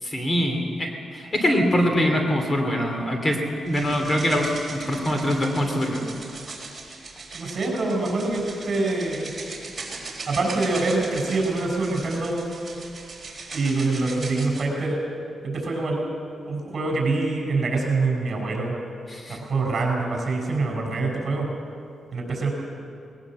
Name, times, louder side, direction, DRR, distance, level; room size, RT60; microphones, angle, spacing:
voice 1, 0.0-3.4 3.6-6.0 19.1-19.4, equal, 30° left, 3 dB, 2.7 m, -23 dB
sound 1, 3.7-14.7, right 3 dB, 25° right, 4.0 m, -39 dB
voice 2, 7.3-9.3 10.3-12.5 13.5-15.0 15.4-16.1 16.5-18.7 19.3-21.5 22.1-22.5, right 3 dB, 45° right, 1 dB, 6.0 m, -25 dB
19.5 x 18.5 x 7.6 m, 2.5 s
cardioid pair, 110°, 0 cm